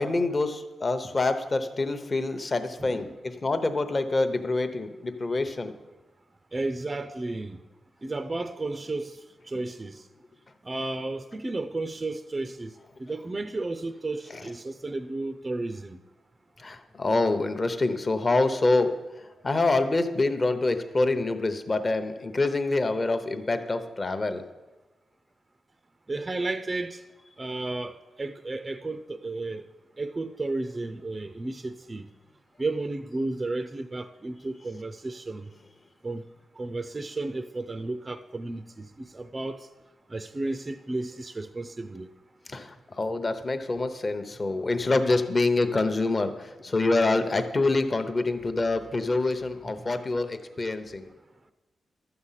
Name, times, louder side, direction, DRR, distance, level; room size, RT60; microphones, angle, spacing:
voice 1, 0.0-5.7 16.6-19.0 19.4-24.4 42.5-51.1, left 2 dB, 25° left, 0.8 m, -26 dB
voice 2, 2.8-3.2 6.5-7.6 8.0-9.2 9.5-10.0 10.6-12.7 13.0-16.0 26.1-27.0 27.4-29.6 30.0-32.1 32.6-35.5 36.0-36.2 36.6-39.7 40.1-42.1, right 2 dB, 20° right, 0.4 m, -33 dB
12.5 x 7.9 x 5.7 m
wide cardioid pair, 150°, 0 cm